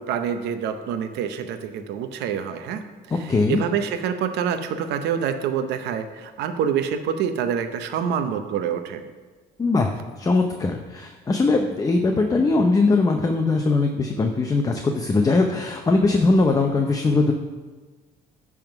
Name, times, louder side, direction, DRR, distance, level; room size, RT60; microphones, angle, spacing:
voice 1, 0.0-2.8 3.2-9.0, right 8 dB, 85° right, 8 dB, 0.7 m, -26 dB
voice 2, 3.1-3.6 9.6-17.3, left 3 dB, 20° left, 3 dB, 0.6 m, -21 dB
10.5 x 3.7 x 5.8 m, 1.3 s
cardioid pair, 110°, 17 cm